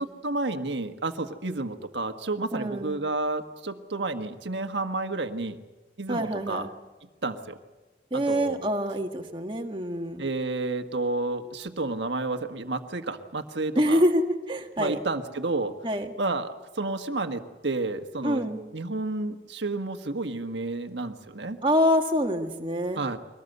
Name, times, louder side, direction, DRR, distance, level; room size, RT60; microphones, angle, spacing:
voice 1, 0.0-5.6 6.0-6.7 7.2-7.6 8.1-8.7 10.2-14.0 14.8-15.7 16.2-21.6 22.9-23.2, right 2 dB, 85° right, 7 dB, 1.5 m, -31 dB
voice 2, 2.5-3.0 6.1-6.7 8.1-10.3 13.8-14.2 14.5-15.0 15.8-16.1 18.2-18.6 21.6-23.0, equal, 25° right, 3 dB, 1.8 m, -26 dB
23.5 x 19.0 x 8.0 m, 1.2 s
head